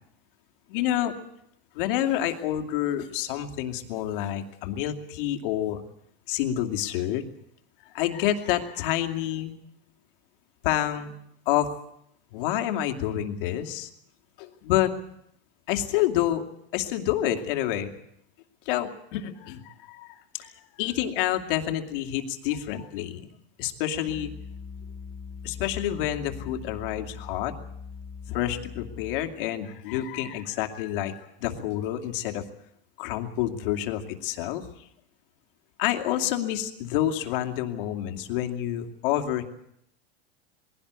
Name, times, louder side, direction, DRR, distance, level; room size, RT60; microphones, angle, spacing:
voice 1, 0.7-1.1 1.7-5.8 6.3-7.2 7.9-9.5 10.6-11.1 11.5-11.7 12.3-13.9 14.4-14.9 15.7-16.5 16.7-17.9 18.7-20.1 20.3-23.2 23.6-24.3 25.4-27.5 28.3-32.5 33.0-34.7 35.8-39.4, left 12 dB, 60° left, 5 dB, 2.5 m, -28 dB
sound 1, 24.1-29.4, left 5 dB, 15° left, 1.5 m, -41 dB
21.5 x 17.0 x 8.2 m, 0.74 s
supercardioid pair, 150°, 30 cm